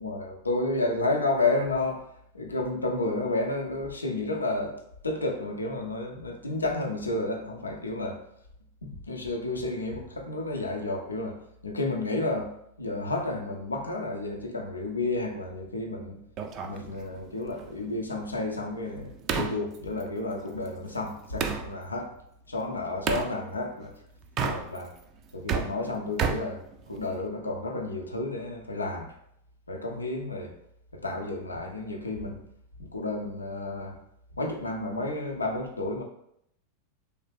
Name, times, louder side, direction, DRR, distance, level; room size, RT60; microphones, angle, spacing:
voice 1, 0.0-2.0 2.3-8.2 8.8-16.2 16.6-22.1 22.5-23.9 24.4-24.9 25.3-29.1 29.7-30.5 30.9-32.4 32.8-34.0 34.4-36.0, left 2 dB, 80° left, 2 dB, 0.6 m, -31 dB
sound 1, 16.4-21.7 23.1-23.3 24.2-25.0 25.3-27.3, right 6 dB, 35° right, 0.4 m, -33 dB
3.2 x 2.8 x 3.2 m, 0.74 s
figure-of-eight pair, 90°, 0 cm